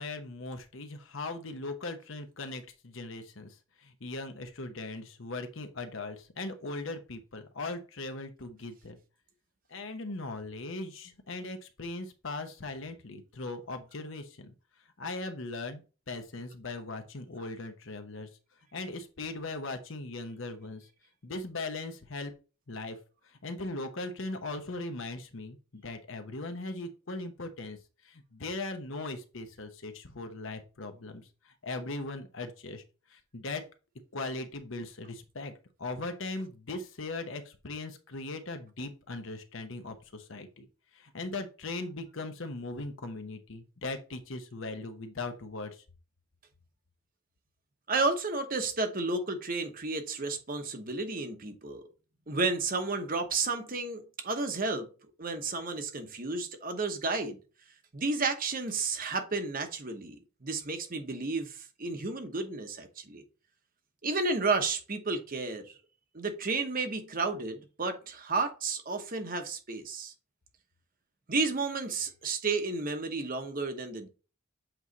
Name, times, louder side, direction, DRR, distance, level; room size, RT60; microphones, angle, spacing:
voice 1, 0.0-3.5 3.8-9.0 9.7-14.5 15.0-18.3 18.7-20.8 21.2-22.3 22.7-23.0 23.4-27.8 28.0-31.2 31.6-32.8 33.1-33.6 34.1-35.5 35.8-40.7 41.0-45.7, left 2 dB, 60° left, 1.0 m, -39 dB
voice 2, 47.9-51.8 52.3-54.9 55.2-57.4 57.9-60.2 60.4-63.2 64.0-65.7 66.1-70.1 71.3-74.1, right 3 dB, 40° right, 1.0 m, -32 dB
7.9 x 3.1 x 4.0 m
head